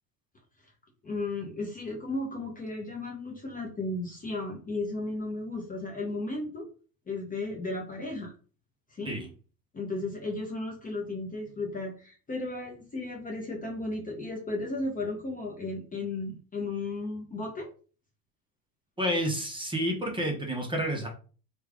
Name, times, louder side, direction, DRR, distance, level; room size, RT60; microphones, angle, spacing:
voice 1, 1.0-6.7 7.1-8.3 8.9-9.2 9.7-17.7, left 2 dB, 15° left, 0 dB, 0.8 m, -34 dB
voice 2, 19.0-21.1, equal, 10° right, 0 dB, 0.9 m, -29 dB
3.1 x 2.5 x 3.5 m, 0.38 s
hypercardioid pair, 90°, 48 cm